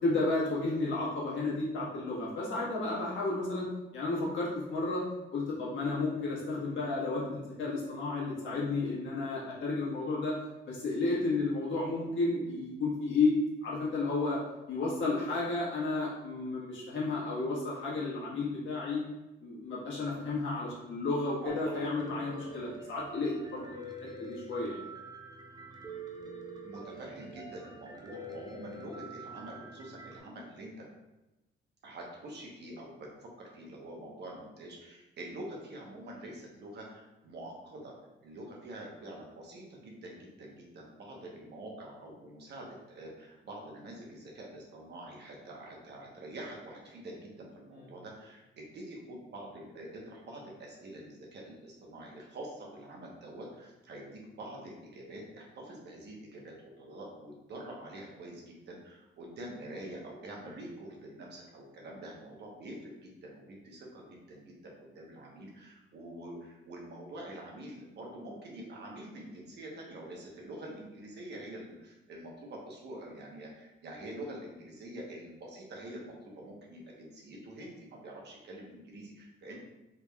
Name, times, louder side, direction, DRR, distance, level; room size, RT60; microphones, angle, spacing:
voice 1, 0.0-5.0 5.3-10.4 10.7-13.3 13.6-14.4 14.7-19.0 19.4-23.9 24.2-24.8 26.2-26.3 47.7-47.8, left 3 dB, 75° left, -6 dB, 1.4 m, -32 dB
voice 2, 21.4-21.9 26.6-30.9 31.8-37.9 38.2-79.6, right 1 dB, 60° right, -2 dB, 1.0 m, -46 dB
Piano, 21.5-30.2, right 2 dB, 20° right, 0.5 m, -46 dB
3.7 x 3.3 x 2.3 m, 1.0 s
cardioid pair, 90°, 20 cm